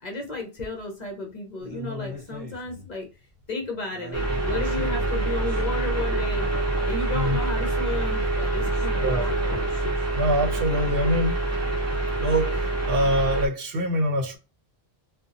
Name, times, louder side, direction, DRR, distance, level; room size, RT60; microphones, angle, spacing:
voice 1, 0.0-3.1 3.5-6.5 6.9-9.6, left 2 dB, 45° left, 0.8 m, -34 dB
sound 1, 1.6-2.9 3.4-3.5 3.8-5.9 6.2-7.9 8.6-10.1, left 2 dB, 35° right, 1.0 m, -41 dB
sound 2, 4.1-13.5, right 2 dB, 20° right, 0.5 m, -26 dB
voice 2, 10.2-11.4 12.2-14.4, right 1 dB, 65° right, 0.8 m, -24 dB
2.6 x 2.2 x 2.5 m
omnidirectional pair, 1.1 m